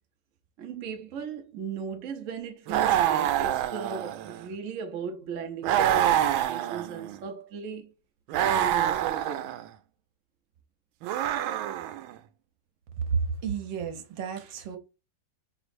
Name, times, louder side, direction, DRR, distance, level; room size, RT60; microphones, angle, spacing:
voice 1, 0.6-7.9 8.4-9.5, right 6 dB, 55° right, 0.9 m, -37 dB
sound 1, 2.7-4.5 5.6-7.2 8.3-9.7 11.0-12.1, right 11 dB, 90° right, 1.4 m, -26 dB
voice 2, 13.0-14.8, right 5 dB, 75° right, 1.5 m, -31 dB
5.0 x 3.1 x 2.5 m
omnidirectional pair, 2.1 m